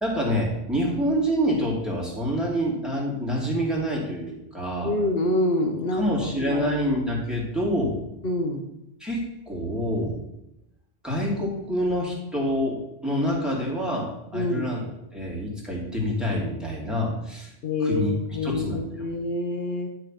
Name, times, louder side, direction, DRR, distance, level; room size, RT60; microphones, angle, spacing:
voice 1, 0.0-5.0 6.0-8.0 9.0-10.2 11.0-17.5 17.8-18.8, equal, ahead, -4 dB, 2.8 m, -27 dB
voice 2, 4.8-6.6 8.2-8.6 14.3-14.7 17.6-19.9, left 2 dB, 70° left, 3 dB, 1.3 m, -26 dB
11.5 x 4.7 x 5.8 m, 0.85 s
omnidirectional pair, 1.0 m